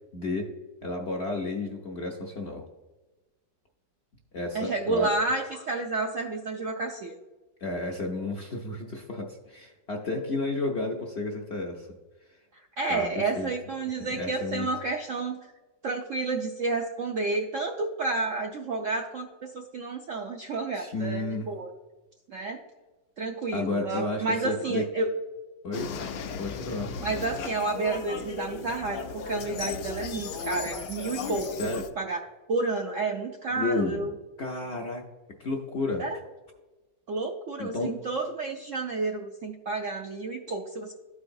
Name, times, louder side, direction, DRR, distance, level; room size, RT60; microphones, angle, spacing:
voice 1, 0.1-0.5 0.8-2.6 4.3-5.1 7.6-11.9 12.9-13.0 13.4-13.5 14.1-14.7 20.7-21.5 23.5-24.8 25.6-25.9 26.4-26.9 31.6-31.8 33.6-34.1 34.4-35.0 35.4-36.0 37.6-37.9, left 2 dB, 55° left, 0 dB, 0.7 m, -31 dB
voice 2, 4.5-7.2 12.5-15.4 15.8-21.7 22.3-22.6 23.2-25.1 27.0-32.2 32.5-34.1 36.0-36.2 37.1-40.9, right 3 dB, 70° right, 2 dB, 0.7 m, -30 dB
sound 1, 25.7-31.9, left 6 dB, 75° left, 1.3 m, -36 dB
12.5 x 4.8 x 2.6 m, 1.1 s
omnidirectional pair, 1.9 m